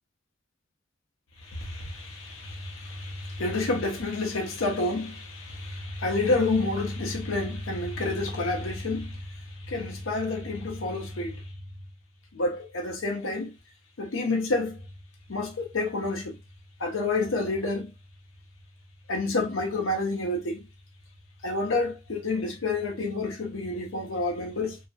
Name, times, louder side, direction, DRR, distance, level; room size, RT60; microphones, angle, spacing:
voice 1, 1.4-11.4 12.3-13.5 14.0-14.8 15.3-16.4 16.8-17.9 19.1-20.6 21.4-24.8, left 2 dB, 70° left, 0.7 m, -29 dB
2.4 x 2.1 x 2.5 m
head